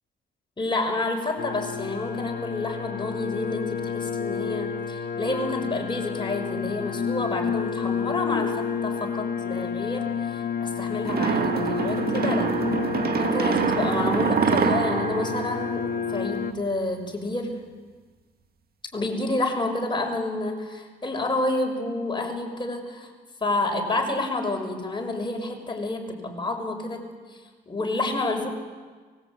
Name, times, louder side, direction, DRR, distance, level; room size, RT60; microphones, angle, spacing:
voice 1, 0.6-12.5 13.2-17.5 18.9-23.1 23.4-27.0 27.3-27.4 27.7-28.5, left 2 dB, 25° left, 2 dB, 6.4 m, -29 dB
sound 1, 1.4-16.5, left 6 dB, 50° left, 1.4 m, -30 dB
sound 2, 11.0-16.4, right 6 dB, 50° right, 1.8 m, -25 dB
24.5 x 22.0 x 9.0 m, 1.4 s
cardioid pair, 90°, 20 cm